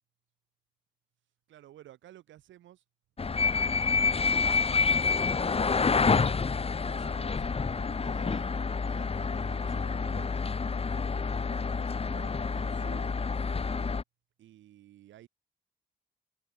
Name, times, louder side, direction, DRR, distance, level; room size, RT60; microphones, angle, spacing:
voice 1, 1.5-2.8 3.5-4.7 6.8-10.5 11.1-13.2 14.4-15.3, right 13 dB, 85° right, 3.6 m, -53 dB
sound 1, 3.2-14.0, left 4 dB, 30° left, 0.8 m, -28 dB
supercardioid pair, 55°, 19 cm